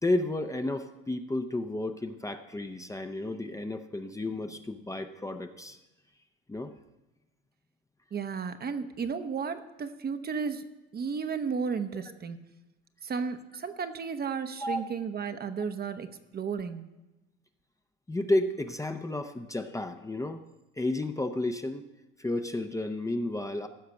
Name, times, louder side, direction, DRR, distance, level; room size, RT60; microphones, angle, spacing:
voice 1, 0.0-5.8 6.5-6.7 14.6-14.8 18.1-20.4 20.8-21.9 22.2-23.7, left 2 dB, 10° left, 7 dB, 0.7 m, -32 dB
voice 2, 8.1-10.6 10.9-12.4 13.0-16.1 16.3-16.8, right 6 dB, 35° right, 9 dB, 0.9 m, -33 dB
15.0 x 5.7 x 6.5 m, 1.0 s
supercardioid pair, 85°, 29 cm